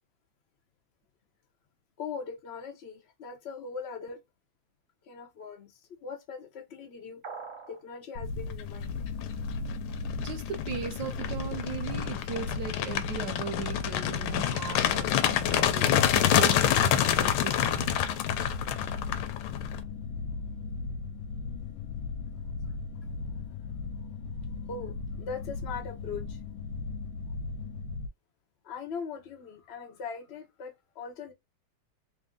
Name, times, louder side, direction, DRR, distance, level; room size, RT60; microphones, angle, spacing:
voice 1, 2.0-4.2 5.1-7.2 7.7-9.0 19.2-19.5 19.7-19.8 24.7-26.4 28.6-31.3, left 5 dB, 55° left, 0.7 m, -40 dB
sound 1, 7.2-7.8, right 5 dB, 45° right, 1.0 m, -41 dB
sound 2, 8.1-28.1, left 4 dB, 75° left, 1.4 m, -37 dB
sound 3, 9.0-9.3 9.7-19.8, left 11 dB, 90° left, 1.5 m, -27 dB
voice 2, 10.2-18.0, right 7 dB, 70° right, 1.3 m, -38 dB
3.6 x 2.6 x 3.6 m
omnidirectional pair, 2.3 m